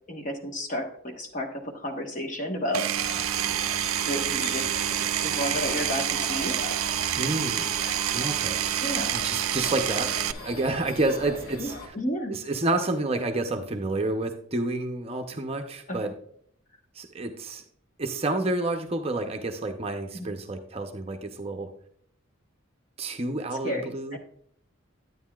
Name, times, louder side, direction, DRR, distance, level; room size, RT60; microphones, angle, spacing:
voice 1, 0.1-2.9 4.0-4.7 5.2-6.6 8.8-9.2 11.6-12.4 15.9-16.0 20.1-20.3 23.6-24.2, equal, 35° left, 3 dB, 1.2 m, -32 dB
Power tool, 2.7-10.3, right 11 dB, 80° right, 0.4 m, -28 dB
sound 1, 2.9-11.9, left 2 dB, 70° left, 1.9 m, -39 dB
voice 2, 7.1-7.7 8.1-8.6 9.1-11.8 12.3-16.1 16.9-17.6 18.0-21.7 23.0-24.2, right 2 dB, 30° right, 5 dB, 0.6 m, -29 dB
9.4 x 9.4 x 2.3 m, 0.64 s
head